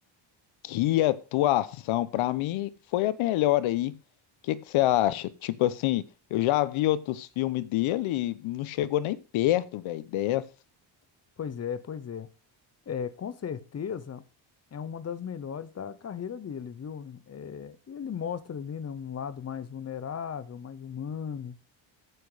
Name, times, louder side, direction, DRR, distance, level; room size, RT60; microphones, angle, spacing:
voice 1, 0.6-3.9 4.4-6.0 6.3-10.4, left 15 dB, 85° left, 0.9 m, -26 dB
voice 2, 11.4-12.3 12.9-14.2 14.7-21.6, left 7 dB, 35° left, 0.9 m, -36 dB
9.1 x 8.4 x 4.9 m
cardioid pair, 130°, 47 cm